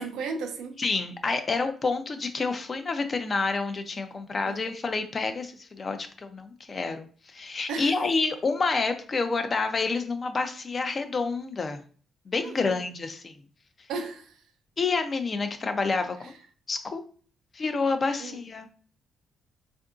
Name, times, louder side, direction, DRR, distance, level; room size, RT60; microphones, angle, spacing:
voice 1, 0.0-0.8 4.5-4.6 7.7-8.0 12.4-12.9 13.9-14.4 16.2-16.3 18.2-18.4, right 4 dB, 85° right, 0.5 m, -35 dB
voice 2, 0.8-7.1 7.3-11.8 12.3-13.3 14.8-16.3 16.7-17.0 17.5-18.7, left 4 dB, 40° left, 0.5 m, -28 dB
3.5 x 2.6 x 2.4 m
cardioid pair, 70°, 0 cm